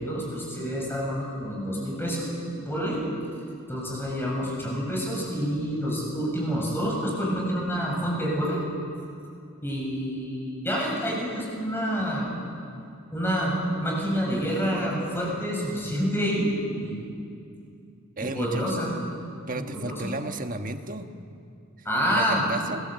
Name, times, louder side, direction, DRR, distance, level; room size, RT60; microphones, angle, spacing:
voice 1, 0.0-2.3 2.7-3.0 3.7-8.6 9.6-12.3 13.1-16.5 16.8-17.1 18.3-19.0 19.7-20.1 21.8-22.4, equal, 10° left, -2 dB, 7.5 m, -28 dB
voice 2, 18.2-18.9 19.5-21.1 22.0-22.8, right 2 dB, 40° right, 6 dB, 1.4 m, -33 dB
29.5 x 22.0 x 8.2 m, 2.5 s
head